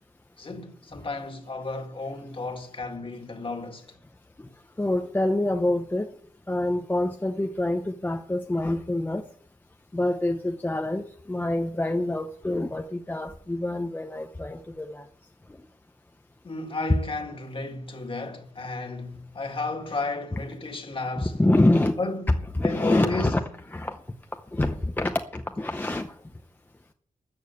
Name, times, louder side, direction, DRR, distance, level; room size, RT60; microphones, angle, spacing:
voice 1, 0.4-4.0 16.4-21.4 22.0-22.4 22.6-23.4, left 3 dB, 40° left, 1.8 m, -33 dB
voice 2, 4.8-6.1 6.5-9.2 9.9-15.0 21.2-21.9 22.5-23.4 23.7-24.0 24.5-26.1, left 1 dB, 15° left, 0.7 m, -26 dB
13.5 x 7.1 x 8.1 m
wide cardioid pair, 140°, 14 cm